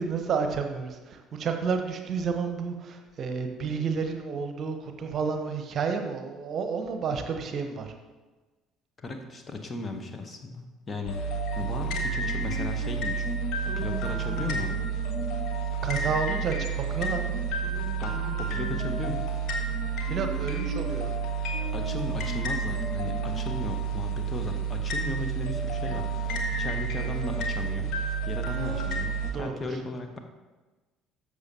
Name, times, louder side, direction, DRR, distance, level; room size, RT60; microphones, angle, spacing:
voice 1, 0.0-7.9 15.8-17.3 20.1-21.1 29.2-29.8, right 5 dB, 45° right, 6 dB, 0.9 m, -31 dB
voice 2, 9.0-13.3 13.6-14.8 18.0-18.1 18.4-19.3 21.7-27.9 28.2-30.2, left 3 dB, 30° left, 5 dB, 1.0 m, -36 dB
sound 1, 11.1-29.3, right 4 dB, 55° left, 1.1 m, -30 dB
13.0 x 6.4 x 2.8 m, 1.2 s
figure-of-eight pair, 55°, 0 cm